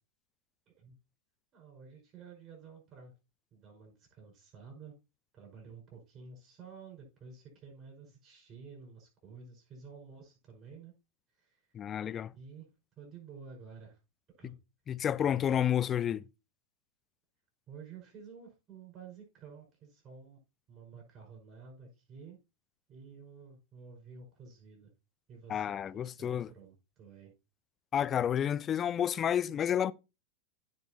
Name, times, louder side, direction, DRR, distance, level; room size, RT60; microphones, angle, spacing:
voice 1, 0.7-1.0 1.5-3.1 3.5-4.9 5.3-10.9 11.4-11.6 12.4-12.7 13.0-14.0 14.4-14.6 17.7-20.4 20.7-22.4 22.9-24.9 25.3-25.8 26.1-27.3, right 5 dB, 30° right, 5.3 m, -51 dB
voice 2, 11.7-12.3 14.9-16.2 25.5-26.5 27.9-29.9, left 9 dB, 25° left, 0.4 m, -30 dB
16.0 x 5.3 x 2.8 m
figure-of-eight pair, 90°, 0 cm